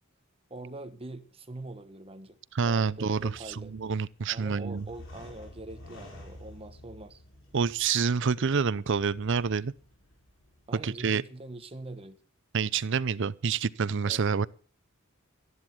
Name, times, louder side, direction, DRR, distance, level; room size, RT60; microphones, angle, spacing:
voice 1, 0.5-2.4 2.6-3.7 4.3-7.2 10.7-12.2 14.0-14.2, right 2 dB, 25° right, 1.2 m, -43 dB
sound 1, 2.5-11.0, left 1 dB, 60° left, 4.9 m, -51 dB
voice 2, 2.5-4.8 7.5-9.7 10.8-11.2 12.5-14.5, right 5 dB, 60° right, 0.6 m, -28 dB
13.5 x 11.0 x 6.1 m
head